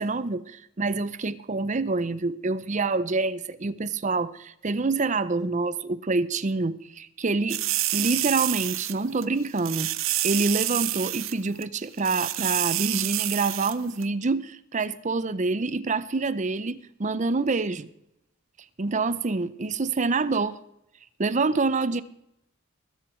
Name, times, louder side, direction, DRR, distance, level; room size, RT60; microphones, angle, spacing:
voice 1, 0.0-7.6 7.9-9.9 10.2-17.9 18.8-20.6 21.2-22.0, right 3 dB, 35° right, 0.6 m, -26 dB
sound 1, 7.5-8.9 9.2-9.3 9.6-11.3 11.6-11.7 12.0-13.7 14.0-14.1, right 15 dB, 70° right, 0.7 m, -28 dB
20.5 x 8.0 x 4.5 m
head